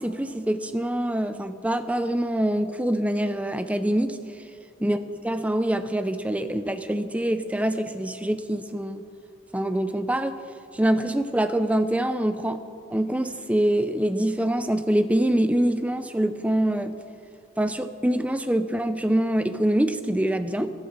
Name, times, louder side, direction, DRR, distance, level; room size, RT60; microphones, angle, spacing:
voice 1, 0.0-4.2 4.8-5.0 5.2-9.0 9.5-10.3 10.7-12.6 12.9-17.0 17.6-20.7, right 1 dB, 5° right, 10 dB, 0.5 m, -25 dB
13.0 x 12.5 x 7.3 m, 2.4 s
head